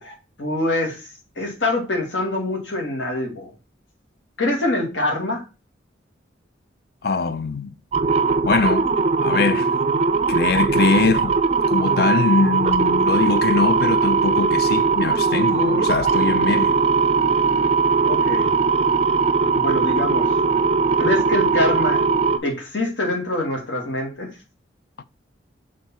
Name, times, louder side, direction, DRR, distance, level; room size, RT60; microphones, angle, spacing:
voice 1, 0.0-3.5 4.4-5.4 18.0-18.5 19.5-20.3 21.0-22.0 22.4-24.3, left 1 dB, 80° left, 1.9 m, -25 dB
voice 2, 7.0-7.7 8.5-8.9 9.2-9.7 10.3-11.4 11.7-16.8, left 4 dB, 55° left, 0.5 m, -22 dB
sound 1, 7.9-22.4, right 4 dB, 35° right, 0.4 m, -19 dB
6.6 x 3.6 x 4.2 m
head